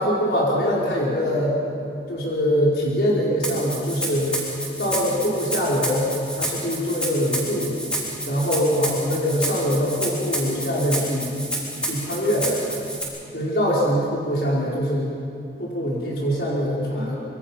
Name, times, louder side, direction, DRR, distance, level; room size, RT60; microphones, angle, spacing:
voice 1, 0.0-4.4 4.8-6.1 6.4-7.8 8.2-11.3 11.8-12.6 13.3-15.1 15.6-17.2, equal, 70° left, -5 dB, 4.8 m, -23 dB
Rattle (instrument), 3.4-13.0, right 1 dB, 5° left, 4.8 m, -29 dB
26.0 x 24.0 x 5.8 m, 2.5 s
head